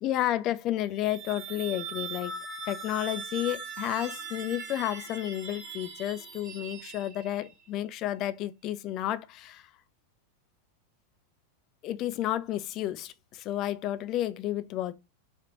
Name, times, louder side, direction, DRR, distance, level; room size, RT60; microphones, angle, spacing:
voice 1, 0.0-2.3 2.7-9.7 11.8-14.9, left 13 dB, 35° left, 0.4 m, -31 dB
sound 1, 0.8-7.5, right 5 dB, 35° right, 1.2 m, -40 dB
4.3 x 2.4 x 2.9 m
figure-of-eight pair, 90°, 0 cm